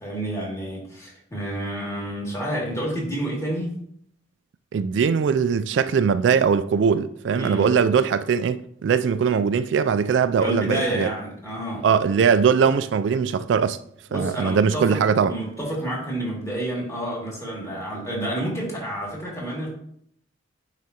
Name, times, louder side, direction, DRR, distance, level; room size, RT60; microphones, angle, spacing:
voice 1, 0.0-3.7 7.3-7.7 10.4-11.9 14.1-15.0 15.3-19.8, right 1 dB, 15° left, 2.4 m, -29 dB
voice 2, 4.7-11.1 11.8-13.8 14.1-15.4, right 6 dB, 70° right, 0.3 m, -21 dB
9.5 x 4.9 x 2.8 m
head